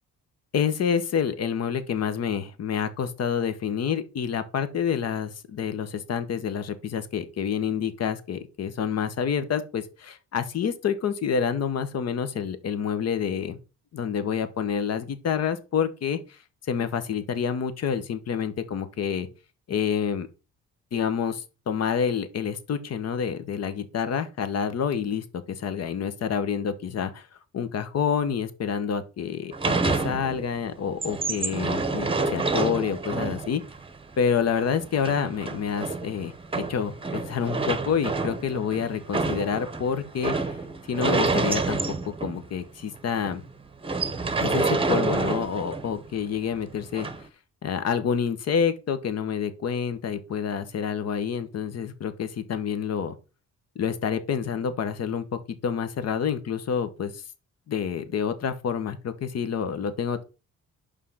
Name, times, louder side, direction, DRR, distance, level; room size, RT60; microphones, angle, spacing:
voice 1, 0.5-13.6 13.9-16.4 16.7-19.3 19.7-20.3 20.9-27.3 27.5-33.6 34.2-40.3 40.9-41.8 42.2-43.4 44.4-47.1 47.6-53.1 53.7-57.2 57.7-60.2, left 7 dB, 55° left, 1.1 m, -28 dB
sound 1, 29.5-30.6 30.9-42.6 43.0-43.1 43.3-43.5 43.8-46.0 47.0-47.2, right 3 dB, 20° right, 0.9 m, -28 dB
5.6 x 5.0 x 5.5 m
cardioid pair, 90°, 30 cm